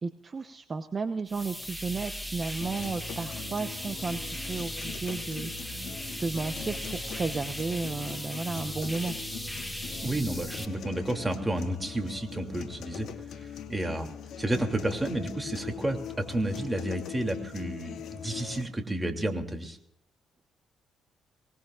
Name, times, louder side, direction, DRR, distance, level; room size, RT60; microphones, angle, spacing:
voice 1, 0.0-5.9 6.2-9.1, right 4 dB, 35° right, 8 dB, 1.0 m, -33 dB
sound 1, 1.3-10.7, equal, 5° left, 1.9 m, -38 dB
sound 2, 2.6-18.6, left 7 dB, 75° left, 2.2 m, -42 dB
voice 2, 10.0-13.1 13.3-14.1 14.4-19.8, right 1 dB, 15° right, 4 dB, 2.9 m, -31 dB
24.0 x 19.0 x 2.5 m, 0.75 s
cardioid pair, 90°, 0 cm